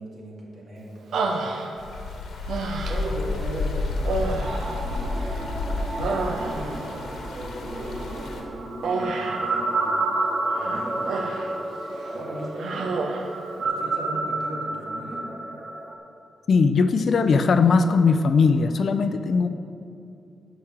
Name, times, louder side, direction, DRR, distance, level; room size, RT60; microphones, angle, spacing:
voice 1, 0.0-1.4 2.8-10.0 10.5-11.2 12.0-12.9 13.6-15.3, right 1 dB, 55° right, -4 dB, 2.5 m, -38 dB
Human voice, 1.1-2.0 2.5-3.2 4.0-5.5 5.8-6.8 8.8-9.5 10.5-11.6 11.9-12.1 12.6-13.4, right 3 dB, 75° right, 0.9 m, -29 dB
sound 1, 1.8-8.4, left 2 dB, 75° left, 1.3 m, -31 dB
sound 2, 4.4-15.9, right 2 dB, 25° right, 1.2 m, -30 dB
voice 2, 16.5-19.5, left 4 dB, 50° left, 10 dB, 0.5 m, -19 dB
10.5 x 5.1 x 7.3 m, 2.6 s
cardioid pair, 125°, 0 cm